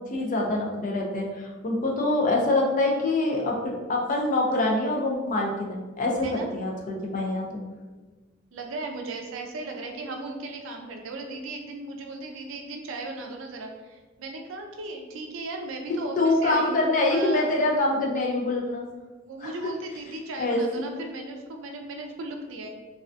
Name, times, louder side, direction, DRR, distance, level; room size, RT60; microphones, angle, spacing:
voice 1, 0.1-7.6 16.2-18.8 19.4-19.5 20.4-20.9, left 2 dB, 40° left, -1 dB, 0.4 m, -25 dB
voice 2, 8.5-16.8 17.1-17.5 19.2-22.7, right 2 dB, 65° right, 2 dB, 0.4 m, -36 dB
2.3 x 2.2 x 2.4 m, 1.3 s
head